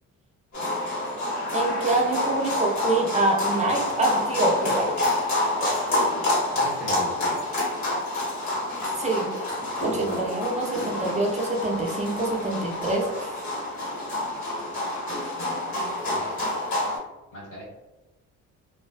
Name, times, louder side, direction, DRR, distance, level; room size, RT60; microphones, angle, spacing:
sound 1, 0.5-17.0, left 1 dB, 70° left, 1.3 m, -28 dB
voice 1, 1.5-5.0 9.0-9.3 9.8-13.3, right 2 dB, 25° right, 0 dB, 0.5 m, -25 dB
voice 2, 6.5-7.4 9.9-10.3 16.0-16.3 17.3-17.6, equal, 90° left, -10 dB, 1.4 m, -39 dB
2.5 x 2.2 x 2.2 m, 1.1 s
cardioid pair, 90°, 30 cm